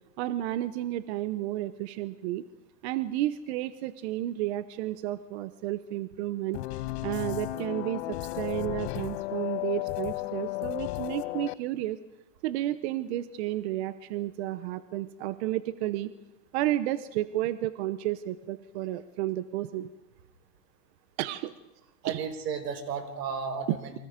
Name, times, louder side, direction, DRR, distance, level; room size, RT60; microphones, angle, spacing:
voice 1, 0.2-2.4 2.8-6.6 7.0-12.0 12.4-16.1 16.5-19.9 21.2-21.5 22.1-22.2, right 14 dB, 45° right, 13 dB, 0.9 m, -32 dB
sound 1, 6.5-11.5, left 19 dB, 45° left, 0.8 m, -34 dB
voice 2, 22.0-24.0, right 6 dB, 85° right, 8 dB, 4.9 m, -33 dB
29.5 x 24.5 x 5.2 m, 1.0 s
supercardioid pair, 155°, 48 cm